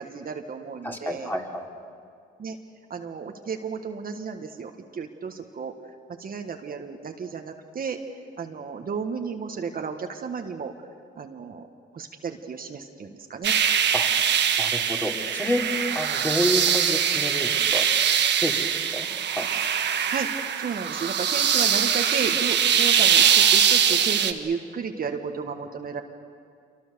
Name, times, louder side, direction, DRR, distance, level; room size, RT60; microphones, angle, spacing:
voice 1, 0.0-1.3 2.4-2.6 2.9-5.7 6.2-8.0 8.4-10.7 11.2-11.7 11.9-13.5 20.1-20.3 20.6-26.0, right 5 dB, 45° right, 4 dB, 1.6 m, -33 dB
voice 2, 0.8-1.7 13.9-14.1 14.6-15.6 15.9-17.8 18.4-18.6 18.9-19.1 19.4-19.5, left 1 dB, 10° left, 1 dB, 3.0 m, -29 dB
sound 1, 13.4-24.3, right 8 dB, 60° right, 1.4 m, -22 dB
26.5 x 24.0 x 6.9 m, 2.3 s
cardioid pair, 90°, 20 cm